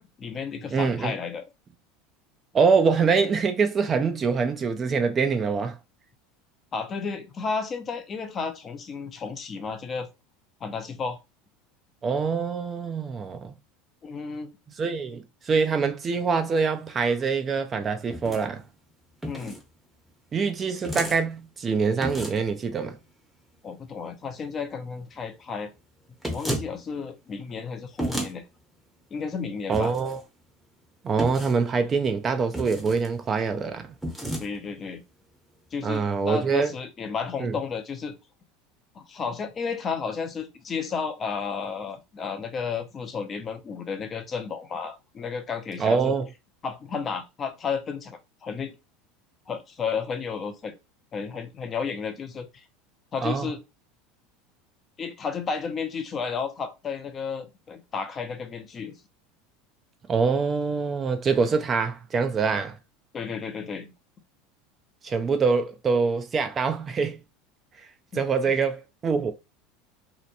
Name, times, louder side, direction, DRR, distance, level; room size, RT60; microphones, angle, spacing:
voice 1, 0.2-1.5 6.7-10.1 10.6-11.2 14.0-14.5 19.3-19.6 23.6-25.7 26.3-28.4 29.1-29.9 34.4-35.0 35.7-38.1 38.9-46.1 46.6-48.7 49.5-50.7 51.1-52.7 53.1-53.6 55.0-59.0 63.1-63.9, left 5 dB, 30° left, 0.5 m, -32 dB
voice 2, 0.7-1.1 2.5-5.7 12.0-13.6 14.8-18.6 20.3-23.0 29.7-30.2 31.0-33.9 35.8-36.7 37.4-37.5 45.8-46.2 53.2-53.5 60.1-62.8 65.0-67.2 68.1-69.3, right 5 dB, 25° right, 0.4 m, -24 dB
sound 1, 18.1-18.4 19.2-19.6 20.8-21.2 22.0-22.5 26.2-26.7 28.0-28.3 29.7-30.2 31.2-31.6 32.5-33.1 34.0-34.5, right 1 dB, 5° right, 0.7 m, -32 dB
2.8 x 2.1 x 2.5 m
supercardioid pair, 120°, 0 cm